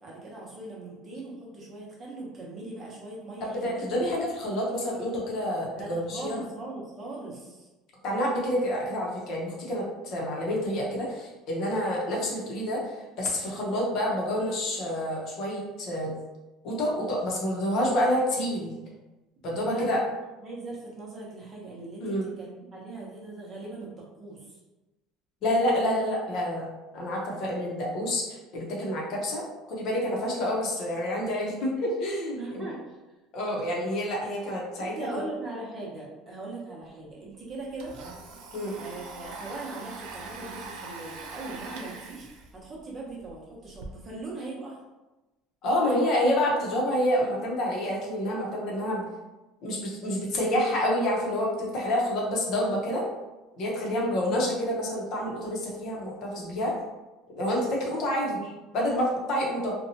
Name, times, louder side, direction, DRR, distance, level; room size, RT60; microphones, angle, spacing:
voice 1, 0.0-3.9 5.7-7.7 19.7-20.0 20.4-23.9 24.2-24.6 32.3-33.0 34.8-37.9 38.8-42.3 42.5-44.8 53.9-54.2, right 2 dB, 30° right, -4 dB, 0.7 m, -40 dB
voice 2, 3.4-6.4 8.0-16.1 16.6-18.7 19.4-20.0 22.0-22.3 25.4-26.6 26.9-32.7 33.3-34.9 38.5-38.8 45.6-49.0 49.6-53.0 53.6-56.7 57.4-59.7, left 1 dB, 50° left, -3 dB, 0.8 m, -28 dB
Domestic sounds home sounds, 36.9-37.0 37.2-43.9, right 4 dB, 70° right, 0.4 m, -43 dB
2.7 x 2.2 x 2.8 m, 1.1 s
cardioid pair, 150°, 0 cm